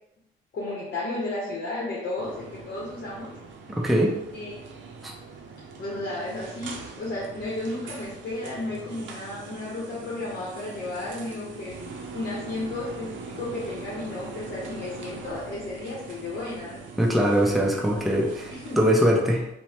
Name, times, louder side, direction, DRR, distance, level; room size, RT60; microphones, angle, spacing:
voice 1, 0.5-3.4 4.3-4.6 5.8-16.8 18.5-19.0, left 2 dB, 55° left, -5 dB, 0.8 m, -33 dB
sound 1, 2.2-18.9, right 4 dB, 70° right, 0.5 m, -42 dB
voice 2, 3.8-4.2 5.0-5.1 17.0-19.5, equal, ahead, -1 dB, 0.5 m, -22 dB
3.0 x 2.1 x 2.8 m, 0.86 s
cardioid pair, 90°, 20 cm